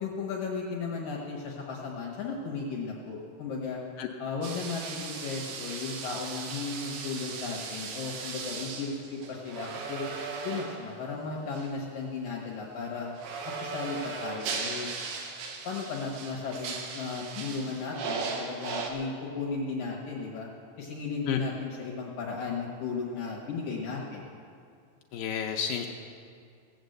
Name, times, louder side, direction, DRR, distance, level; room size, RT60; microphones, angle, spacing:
voice 1, 0.0-3.8 4.2-10.1 10.4-13.1 13.6-14.9 15.6-20.5 20.8-24.3, left 4 dB, 65° left, -2 dB, 2.5 m, -35 dB
sound 1, 4.4-11.0 11.5-11.7 13.2-18.9, right 4 dB, 85° right, 3.6 m, -37 dB
voice 2, 25.1-25.9, left 8 dB, 85° left, 3 dB, 2.0 m, -30 dB
17.5 x 8.0 x 7.8 m, 2.3 s
omnidirectional pair, 5.0 m